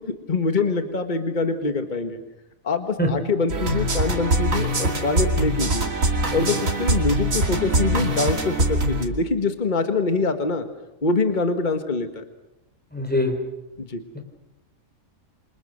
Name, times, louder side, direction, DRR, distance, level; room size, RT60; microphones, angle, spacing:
voice 1, 0.1-2.2 2.6-5.9 6.3-10.7 11.0-12.2 13.8-14.0, left 3 dB, 35° left, 7 dB, 1.7 m, -24 dB
sound 1, 3.5-9.1, right 1 dB, 90° right, 3.0 m, -23 dB
voice 2, 12.9-13.3 14.1-14.2, left 1 dB, 5° left, 4 dB, 4.3 m, -22 dB
28.0 x 25.5 x 6.7 m, 0.93 s
omnidirectional pair, 1.4 m